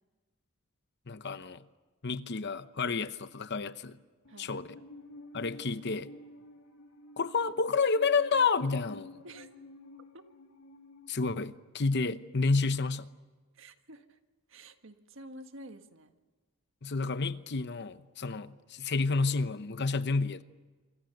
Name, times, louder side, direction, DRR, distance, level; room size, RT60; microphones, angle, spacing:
voice 1, 1.1-1.6 2.0-4.0 4.4-4.7 5.3-6.1 7.2-9.2 11.1-13.1 16.8-20.4, left 4 dB, 50° left, 0.9 m, -30 dB
Musical instrument, 4.2-11.1, left 1 dB, 85° left, 2.7 m, -51 dB
voice 2, 4.3-4.9 9.2-9.5 10.1-10.2 13.5-14.2 14.5-16.1, right 1 dB, 60° right, 1.6 m, -50 dB
26.5 x 25.0 x 6.7 m
head